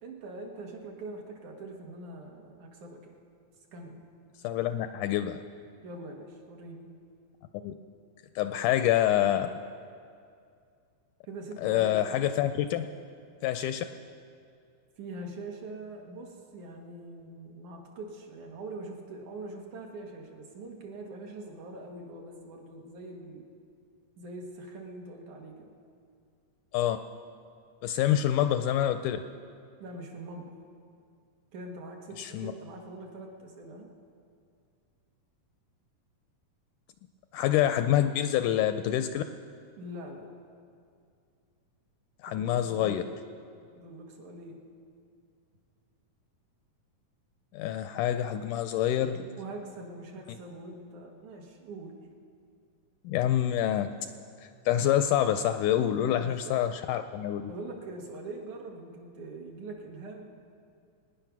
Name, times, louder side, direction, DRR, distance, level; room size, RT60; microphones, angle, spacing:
voice 1, 0.0-3.1 3.7-4.0 5.8-6.9 11.2-12.2 15.0-23.4 24.2-25.7 29.8-30.5 31.5-33.9 39.8-40.4 42.3-43.1 43.8-44.6 49.4-52.0 56.0-56.7 57.5-60.3, right 2 dB, 65° right, 0 dB, 2.8 m, -43 dB
voice 2, 4.4-5.4 7.6-7.7 8.4-9.5 11.6-12.9 13.4-13.9 26.7-27.0 27.8-29.2 32.2-32.5 37.3-39.2 42.2-43.0 47.5-49.3 53.0-53.9 54.7-57.4, left 11 dB, 80° left, 9 dB, 1.9 m, -26 dB
23.0 x 10.0 x 6.0 m, 2.3 s
omnidirectional pair, 4.0 m